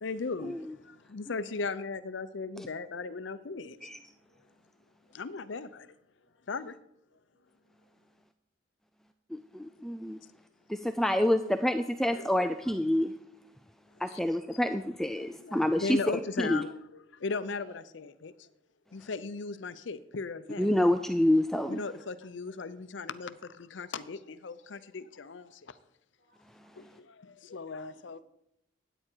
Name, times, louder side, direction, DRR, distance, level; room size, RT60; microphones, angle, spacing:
voice 1, 0.0-3.9 5.1-5.9 6.5-6.8 12.1-12.8 14.1-14.2 14.5-14.6 15.1-18.5 18.9-20.7 21.7-25.8 26.7-28.2, left 4 dB, 65° left, 0.6 m, -38 dB
voice 2, 4.1-4.4 6.2-6.3 15.9-16.0 17.6-17.7 21.3-21.5 26.2-26.8 27.9-28.2, equal, 45° right, 4.4 m, -62 dB
voice 3, 9.3-10.2 10.7-13.1 14.0-16.0 16.4-16.6 20.6-21.8, left 1 dB, ahead, 0.4 m, -27 dB
13.5 x 9.0 x 4.5 m
head